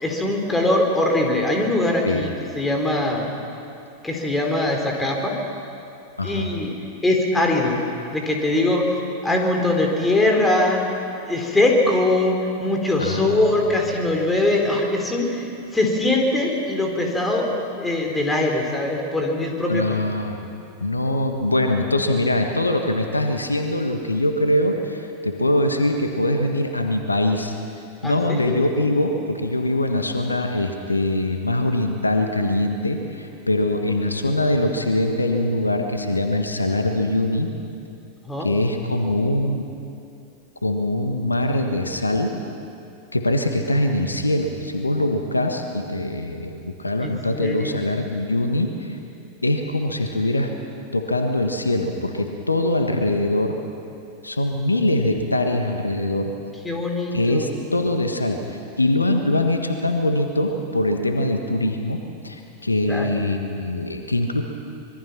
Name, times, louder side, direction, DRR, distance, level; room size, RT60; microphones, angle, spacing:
voice 1, 0.0-2.3 2.6-3.3 4.0-5.3 6.2-6.7 7.0-7.8 8.1-8.8 9.2-10.8 11.3-15.4 15.7-20.0 28.0-28.6 38.3-38.5 47.0-47.9 56.6-57.5 62.9-63.1, left 2 dB, 10° left, 1 dB, 4.1 m, -22 dB
voice 2, 6.2-6.5 13.0-13.7 19.7-20.4 20.8-27.6 28.0-37.5 38.4-39.6 40.6-42.4 43.1-49.0 49.4-50.5 50.9-53.6 54.2-56.3 57.1-64.4, left 1 dB, 80° left, 5 dB, 1.5 m, -23 dB
25.5 x 22.0 x 6.0 m, 2.7 s
figure-of-eight pair, 90°, 0 cm